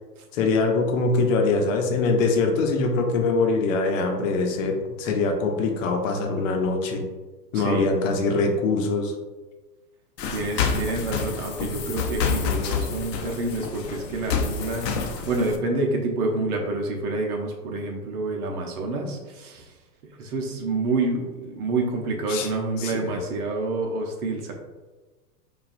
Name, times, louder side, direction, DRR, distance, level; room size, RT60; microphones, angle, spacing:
voice 1, 0.3-7.0 7.5-9.1 22.3-22.5 22.8-23.2, left 3 dB, 50° left, 3 dB, 0.8 m, -23 dB
voice 2, 7.5-8.0 10.3-14.9 15.2-19.7 20.2-24.5, right 2 dB, 65° right, 2 dB, 1.0 m, -28 dB
sound 1, 10.2-15.6, left 5 dB, 80° left, 0.7 m, -28 dB
4.9 x 2.5 x 2.5 m, 1.2 s
hypercardioid pair, 110°, 49 cm